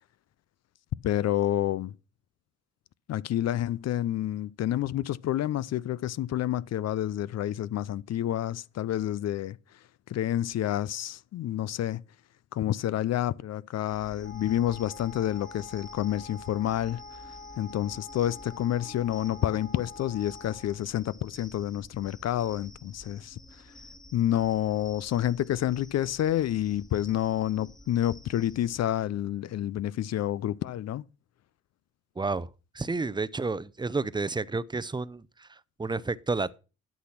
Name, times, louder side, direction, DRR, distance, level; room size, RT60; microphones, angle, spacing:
voice 1, 1.0-1.9 3.1-9.6 10.1-12.0 12.5-17.0 17.6-23.4 24.1-31.0, left 12 dB, 60° left, 0.5 m, -29 dB
sound 1, 13.9-28.8, left 1 dB, 15° left, 1.6 m, -51 dB
Wind instrument woodwind instrument, 14.2-20.8, left 4 dB, 35° left, 4.5 m, -46 dB
voice 2, 32.2-32.5 32.7-36.6, right 3 dB, 15° right, 0.6 m, -31 dB
12.0 x 6.2 x 5.8 m
cardioid pair, 90°, 30 cm